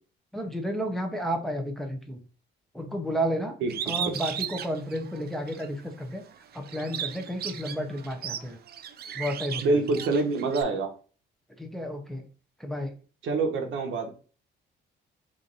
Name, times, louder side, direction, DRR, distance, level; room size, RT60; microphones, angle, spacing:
voice 1, 0.3-2.2 2.7-3.5 3.9-6.2 6.5-8.6 9.1-9.8 11.6-12.2 12.6-12.9, equal, ahead, 3 dB, 0.6 m, -32 dB
Bird, 3.7-5.7 6.1-10.6, right 9 dB, 55° right, 0.4 m, -36 dB
voice 2, 9.6-10.9 13.2-14.1, right 3 dB, 80° right, 4 dB, 0.9 m, -26 dB
3.1 x 2.6 x 3.9 m, 0.39 s
cardioid pair, 90°, 20 cm